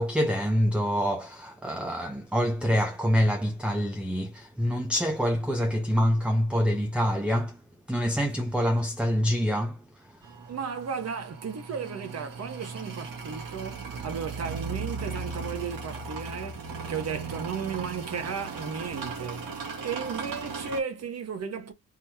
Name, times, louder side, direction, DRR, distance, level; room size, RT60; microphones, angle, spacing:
voice 1, 0.0-7.6 7.9-10.3, equal, 5° right, 0.6 m, -26 dB
sound 1, 10.2-20.8, right 4 dB, 60° right, 1.9 m, -37 dB
voice 2, 10.5-21.7, right 6 dB, 45° right, 1.3 m, -35 dB
4.0 x 3.0 x 2.8 m
cardioid pair, 110°, 37 cm